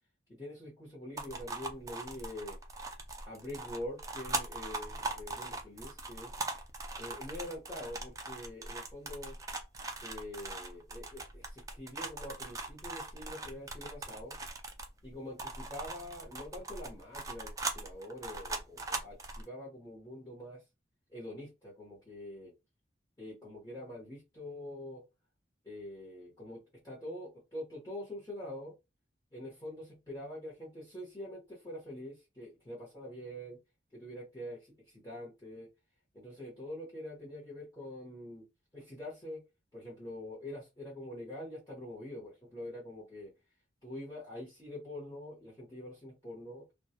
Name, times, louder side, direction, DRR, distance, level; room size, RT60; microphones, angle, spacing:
voice 1, 0.3-2.6 3.3-6.4 7.0-9.3 10.0-14.3 15.0-20.6 21.1-22.5 23.2-25.0 25.6-26.6 26.8-28.7 29.3-33.6 33.9-35.7 36.1-38.4 38.7-39.4 39.7-43.3 43.8-46.6, left 1 dB, 20° left, 0.9 m, -45 dB
sound 1, 1.2-15.0 15.4-19.4, right 3 dB, 20° right, 0.3 m, -40 dB
2.2 x 2.1 x 2.7 m
head